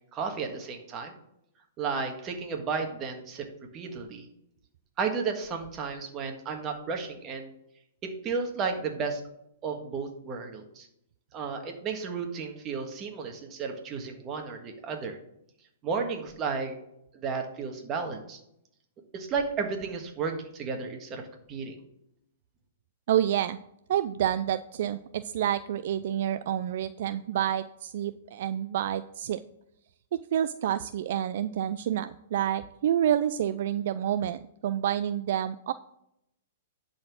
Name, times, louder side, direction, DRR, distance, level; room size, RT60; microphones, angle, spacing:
voice 1, 0.1-1.1 1.8-3.5 3.7-4.3 5.0-7.5 8.0-9.2 9.6-10.9 11.3-15.2 15.8-16.7 17.1-18.4 19.1-21.8, right 5 dB, 30° right, 4 dB, 1.6 m, -33 dB
voice 2, 23.1-23.6 23.9-29.4 30.3-35.7, right 10 dB, 60° right, 13 dB, 0.3 m, -28 dB
10.5 x 4.3 x 6.1 m, 0.79 s
hypercardioid pair, 140°, 0 cm